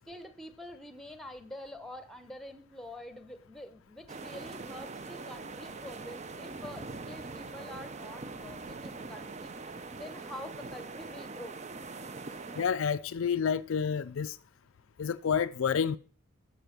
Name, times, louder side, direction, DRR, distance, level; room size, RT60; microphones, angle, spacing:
voice 1, 0.1-9.5 9.9-11.6, left 1 dB, ahead, 1.0 m, -46 dB
sound 1, 4.1-12.7, right 3 dB, 30° right, 0.6 m, -42 dB
voice 2, 12.5-14.4 15.0-16.0, left 7 dB, 65° left, 0.4 m, -29 dB
10.5 x 7.7 x 5.9 m
head